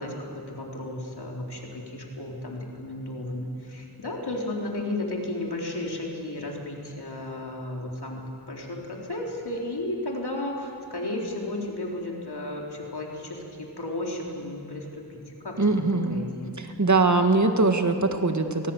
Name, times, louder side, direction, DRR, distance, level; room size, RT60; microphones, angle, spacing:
voice 1, 0.0-15.8 16.1-16.5, left 1 dB, 70° left, -1 dB, 4.1 m, -34 dB
voice 2, 15.6-16.2 16.6-18.7, right 3 dB, 45° right, 6 dB, 1.9 m, -22 dB
28.0 x 19.0 x 7.3 m, 2.6 s
wide cardioid pair, 40°, 41 cm